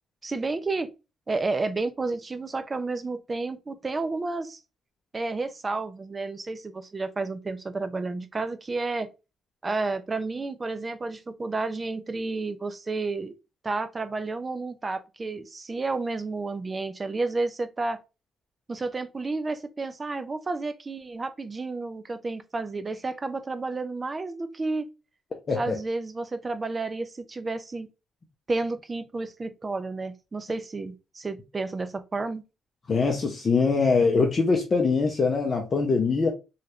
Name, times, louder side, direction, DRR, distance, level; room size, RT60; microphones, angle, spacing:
voice 1, 0.2-0.9 1.3-4.6 5.1-9.1 9.6-13.3 13.6-18.0 18.7-24.9 25.6-27.9 28.5-32.4, right 3 dB, 30° right, 0.5 m, -31 dB
voice 2, 32.9-36.3, left 4 dB, 40° left, 0.6 m, -23 dB
3.1 x 2.4 x 2.9 m
cardioid pair, 90°, 0 cm